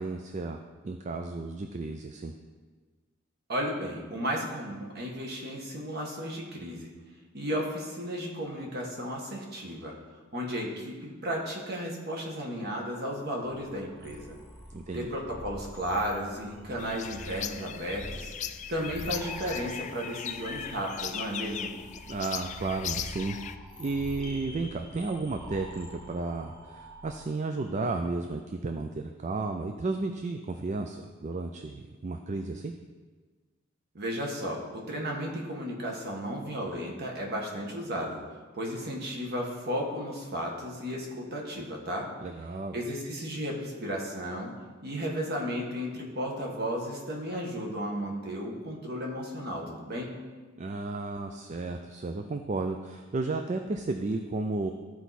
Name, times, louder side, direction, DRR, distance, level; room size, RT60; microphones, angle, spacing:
voice 1, 0.0-2.3 14.7-15.1 22.1-23.4 23.8-32.7 42.2-42.8 50.6-54.7, right 3 dB, 35° right, 5 dB, 0.4 m, -33 dB
voice 2, 3.5-6.9 7.3-9.9 10.3-14.3 14.9-18.3 18.7-21.8 33.9-38.2 38.5-42.1 42.7-44.5 44.8-50.1, equal, 55° right, -1 dB, 1.6 m, -34 dB
sound 1, 13.4-27.3, equal, 5° left, 1.1 m, -46 dB
sound 2, 16.8-23.6, left 9 dB, 35° left, 0.3 m, -38 dB
13.5 x 4.6 x 4.2 m, 1.4 s
head